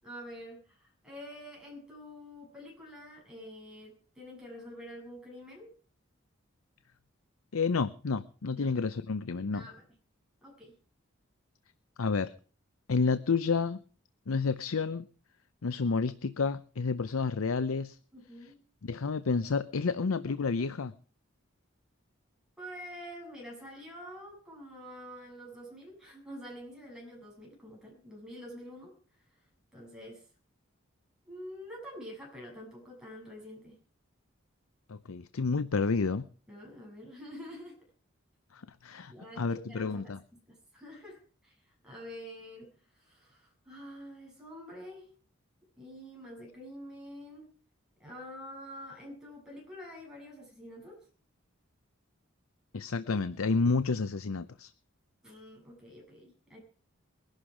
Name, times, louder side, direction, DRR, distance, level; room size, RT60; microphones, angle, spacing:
voice 1, 0.0-5.7 8.5-8.8 9.5-9.8 10.4-10.8 18.1-18.6 22.6-29.4 29.7-30.3 31.2-33.8 36.5-37.8 39.1-40.1 40.5-45.1 45.8-47.5 48.0-51.1 55.2-56.6, equal, 5° right, -3 dB, 7.8 m, -47 dB
voice 2, 7.5-9.6 12.0-12.3 12.9-13.8 14.3-15.1 15.6-18.0 18.8-20.9 34.9-36.3 38.5-40.2 52.7-54.7, left 4 dB, 85° left, 13 dB, 0.6 m, -30 dB
21.5 x 11.5 x 5.0 m, 0.42 s
head